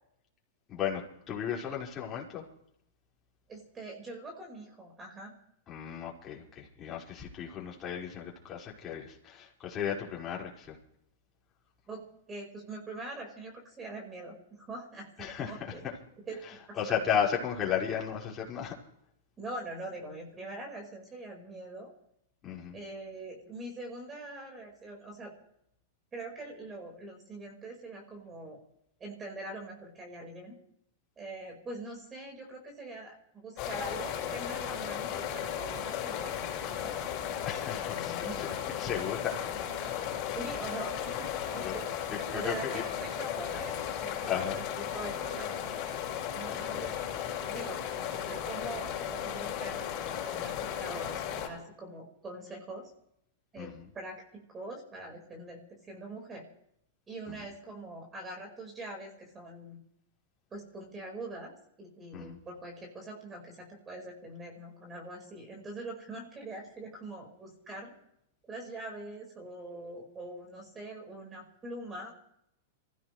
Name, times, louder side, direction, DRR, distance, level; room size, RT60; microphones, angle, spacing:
voice 1, 0.7-1.0 1.3-2.4 5.7-10.8 15.2-15.5 15.8-15.9 16.8-18.7 22.4-22.8 37.5-38.5 38.8-39.4 40.3-40.4 41.6-41.8 42.3-42.8 44.3-44.6 46.5-46.9 53.6-53.9 62.1-62.4, left 8 dB, 25° left, -3 dB, 5.5 m, -34 dB
voice 2, 3.5-5.3 11.9-15.8 16.3-17.2 19.4-21.9 22.7-25.3 26.1-28.6 29.0-30.5 31.2-37.0 37.7-38.4 40.3-41.9 42.3-45.5 46.3-46.9 47.5-52.9 53.5-56.5 57.1-59.8 60.5-61.5 61.8-67.9 68.4-72.1, right 2 dB, 15° right, 1 dB, 5.2 m, -43 dB
sound 1, 33.6-51.5, left 9 dB, 40° left, 7.6 m, -35 dB
27.0 x 16.0 x 3.4 m, 0.75 s
hypercardioid pair, 145°, 0 cm